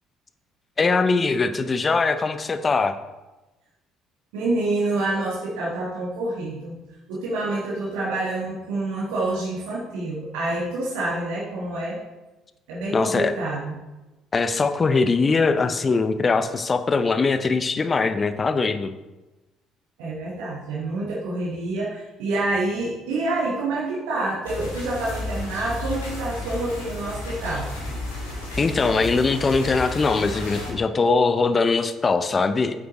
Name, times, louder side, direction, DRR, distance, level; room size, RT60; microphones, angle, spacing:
voice 1, 0.8-2.9 12.9-13.3 14.3-18.9 28.6-32.7, left 4 dB, 30° left, 10 dB, 0.7 m, -21 dB
voice 2, 4.3-6.7 7.1-12.0 12.7-13.8 20.0-27.7, right 2 dB, 70° right, -5 dB, 1.4 m, -27 dB
sound 1, 24.4-30.7, left 1 dB, 80° left, 2.4 m, -32 dB
8.5 x 7.5 x 3.0 m, 1.1 s
figure-of-eight pair, 50°, 0 cm